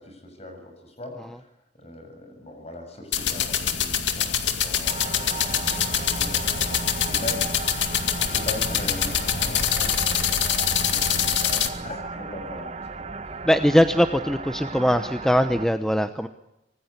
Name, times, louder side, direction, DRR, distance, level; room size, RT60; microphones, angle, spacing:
voice 1, 0.0-1.5 1.8-7.5 7.8-9.9 10.7-12.9, left 1 dB, 35° left, 6 dB, 7.2 m, -40 dB
sound 1, 3.1-11.7, left 8 dB, 85° left, 2.1 m, -24 dB
sound 2, 4.8-15.7, right 3 dB, 35° right, 1.2 m, -35 dB
voice 2, 13.4-16.3, equal, 5° left, 8 dB, 0.8 m, -21 dB
26.0 x 19.0 x 8.2 m, 0.88 s
head